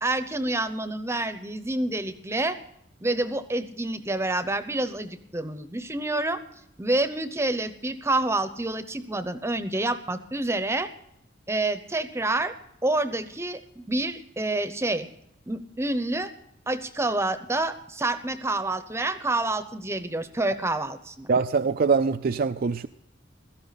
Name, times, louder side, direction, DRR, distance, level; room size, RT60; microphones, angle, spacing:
voice 1, 0.0-2.6 3.0-6.4 6.8-10.9 11.5-12.5 12.8-15.1 15.5-16.3 16.7-21.3, right 2 dB, 15° right, 11 dB, 0.8 m, -28 dB
voice 2, 21.3-22.9, right 5 dB, 50° right, 9 dB, 0.4 m, -23 dB
16.0 x 13.5 x 4.1 m, 0.76 s
head